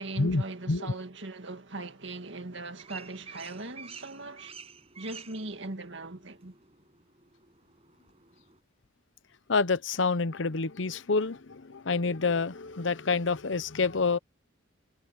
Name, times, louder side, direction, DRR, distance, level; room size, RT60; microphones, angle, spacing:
voice 1, 0.0-4.6 5.0-6.5, right 2 dB, 60° right, 2.1 m, -39 dB
sound 1, 2.4-8.6, right 5 dB, 30° right, 7.6 m, -50 dB
voice 2, 9.5-14.2, left 4 dB, 65° left, 0.8 m, -27 dB
head